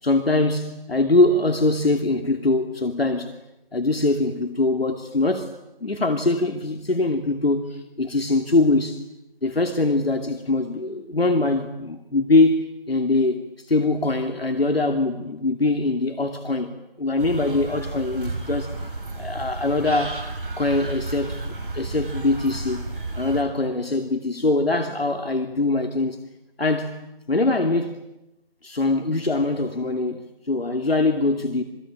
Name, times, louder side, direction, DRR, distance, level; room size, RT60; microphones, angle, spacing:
voice 1, 0.0-3.4 3.7-5.5 5.8-9.0 9.4-18.9 19.2-20.2 20.6-21.4 21.7-22.9 23.2-26.2 26.6-27.0 27.3-28.0 28.6-31.6, left 2 dB, 85° left, 2.8 m, -22 dB
sound 1, 17.2-23.4, right 2 dB, 60° right, 7.2 m, -32 dB
28.0 x 22.0 x 8.9 m
figure-of-eight pair, 165°, 29 cm